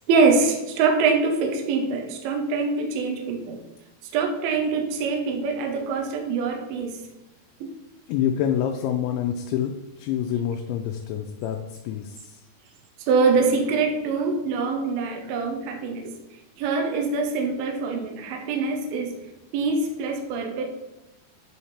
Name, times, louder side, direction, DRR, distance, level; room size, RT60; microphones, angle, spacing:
voice 1, 0.1-3.6 4.1-7.0 7.6-7.7 13.1-16.1 16.6-19.2 19.5-20.6, right 4 dB, 75° right, 3 dB, 2.4 m, -24 dB
voice 2, 8.1-12.4, left 9 dB, 85° left, 4 dB, 2.8 m, -27 dB
10.0 x 3.5 x 4.2 m, 0.99 s
omnidirectional pair, 5.2 m